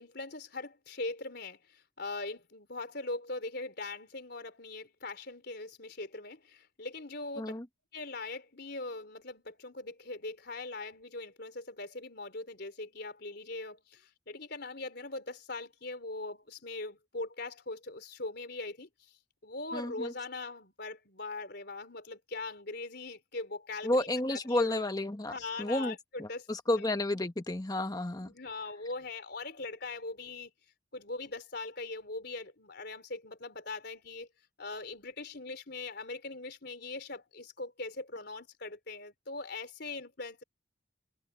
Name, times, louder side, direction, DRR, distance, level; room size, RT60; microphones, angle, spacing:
voice 1, 0.0-7.6 7.9-18.9 19.4-24.8 25.3-26.5 26.7-26.9 28.2-30.5 30.9-34.3 34.6-40.4, left 3 dB, 55° left, 4.2 m, -41 dB
voice 2, 19.7-20.1 23.8-25.3 25.6-28.3, left 1 dB, 20° left, 1.0 m, -31 dB
head